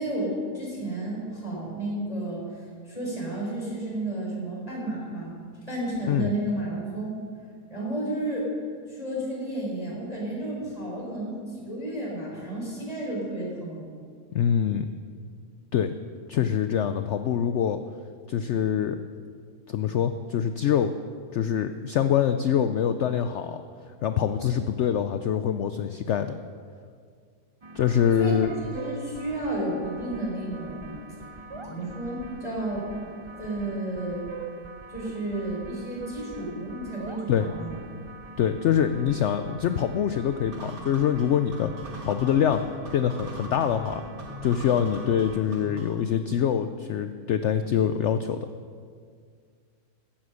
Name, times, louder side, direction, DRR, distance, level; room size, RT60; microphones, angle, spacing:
voice 1, 0.0-2.5 2.9-5.4 5.7-7.1 7.7-8.5 8.9-13.9 28.2-28.4 28.7-30.9 31.2-31.3 31.6-32.9 33.3-34.3 34.9-37.7, right 1 dB, 20° left, -4 dB, 4.4 m, -32 dB
voice 2, 14.3-14.9 15.7-15.9 16.3-17.8 18.3-19.0 19.7-20.9 21.3-23.6 24.0-26.4 27.7-28.5 37.3-37.5 38.4-42.6 42.9-44.0 44.4-48.5, left 9 dB, 70° left, 9 dB, 0.6 m, -24 dB
sound 1, 27.6-45.4, right 2 dB, 35° right, 0.5 m, -43 dB
sound 2, 40.5-46.1, equal, 60° right, 2.0 m, -41 dB
14.5 x 10.5 x 6.4 m, 2.1 s
omnidirectional pair, 1.7 m